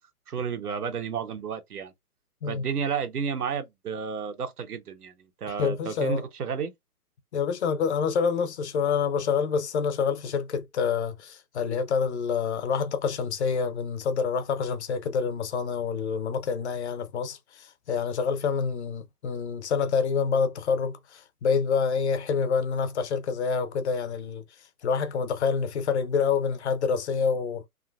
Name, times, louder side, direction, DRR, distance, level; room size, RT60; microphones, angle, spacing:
voice 1, 0.3-1.9 2.5-5.1 5.4-6.7, right 6 dB, 80° right, 1.0 m, -31 dB
voice 2, 5.6-6.2 7.3-24.4 24.8-27.7, left 6 dB, 50° left, 0.7 m, -27 dB
3.8 x 2.6 x 2.4 m
hypercardioid pair, 140°, 45 cm